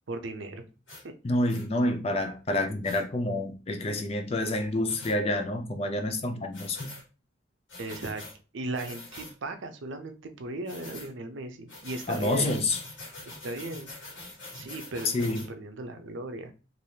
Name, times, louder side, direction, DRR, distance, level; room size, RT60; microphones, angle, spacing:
voice 1, 0.1-0.6 7.8-8.2 8.5-12.6 13.4-13.9 14.5-16.5, right 2 dB, 75° right, 0.6 m, -37 dB
sound 1, 0.9-1.0 1.5-1.7 2.8-3.0 4.9-5.2 6.5-7.0 7.7-8.3 8.7-9.3 10.7-11.1 11.7-15.5, left 2 dB, 70° left, 1.3 m, -44 dB
voice 2, 1.2-7.0 12.1-12.8 15.0-15.4, left 1 dB, 30° left, 0.4 m, -28 dB
3.3 x 2.6 x 2.7 m
head